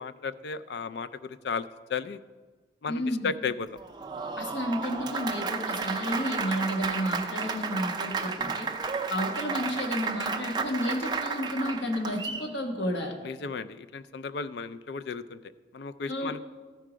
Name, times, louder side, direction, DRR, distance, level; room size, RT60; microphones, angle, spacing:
voice 1, 0.0-2.2 2.8-3.7 13.2-16.4, left 5 dB, 70° left, 13 dB, 0.4 m, -35 dB
voice 2, 2.9-3.3 4.4-8.7 9.1-13.1 16.1-16.3, equal, 90° left, 2 dB, 1.4 m, -31 dB
Applause, 3.8-12.5, right 4 dB, 25° right, 0.4 m, -32 dB
13.5 x 4.7 x 5.0 m, 1.4 s
head